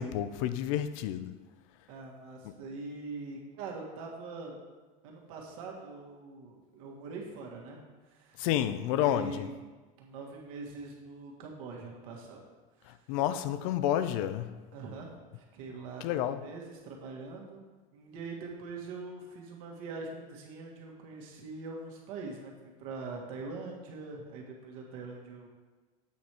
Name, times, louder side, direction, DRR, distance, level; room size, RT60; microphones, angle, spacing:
voice 1, 0.0-1.3 8.4-9.5 13.1-14.5 16.0-16.4, left 11 dB, 75° left, 0.5 m, -30 dB
voice 2, 1.9-4.6 5.0-7.8 8.1-8.4 8.9-9.7 10.0-12.4 12.8-13.0 14.7-17.7 17.9-22.5 22.8-25.5, right 3 dB, 80° right, 1.7 m, -43 dB
8.4 x 4.4 x 4.8 m
supercardioid pair, 140°, 18 cm